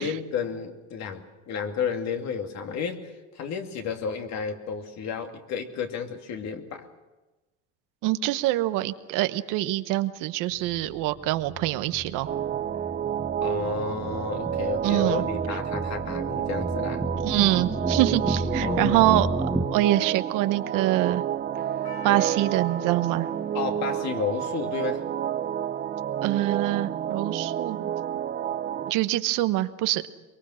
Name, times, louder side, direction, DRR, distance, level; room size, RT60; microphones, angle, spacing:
voice 1, 0.0-6.9 13.4-17.0 18.6-19.2 23.5-25.0, left 6 dB, 55° left, 5 dB, 2.5 m, -32 dB
voice 2, 8.0-12.3 14.8-15.2 17.2-21.2 22.0-23.3 26.2-27.8 28.9-30.0, right 16 dB, 75° right, 12 dB, 1.0 m, -25 dB
sound 1, 10.6-19.7, right 1 dB, 10° right, 1.3 m, -32 dB
sound 2, 12.3-28.9, right 10 dB, 30° right, 0.6 m, -30 dB
Percussion, 21.8-26.2 26.5-26.6, equal, 20° left, 3.0 m, -47 dB
23.0 x 23.0 x 6.4 m, 1.2 s
cardioid pair, 115°, 32 cm